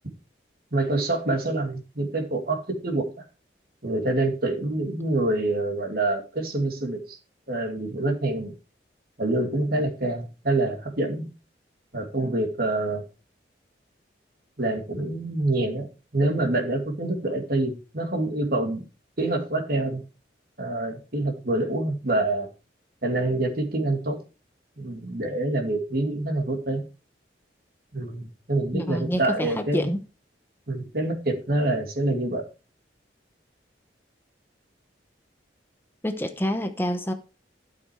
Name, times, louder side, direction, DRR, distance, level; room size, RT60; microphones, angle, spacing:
voice 1, 0.7-3.2 3.8-7.2 7.5-8.5 9.2-11.3 11.9-13.0 14.6-18.8 19.2-20.0 20.6-22.5 23.0-24.2 24.8-26.8 27.9-29.9 30.7-32.5, right 2 dB, 55° right, 2.5 m, -26 dB
voice 2, 28.7-30.0 36.0-37.1, equal, 10° left, 0.8 m, -27 dB
12.5 x 6.7 x 4.6 m
head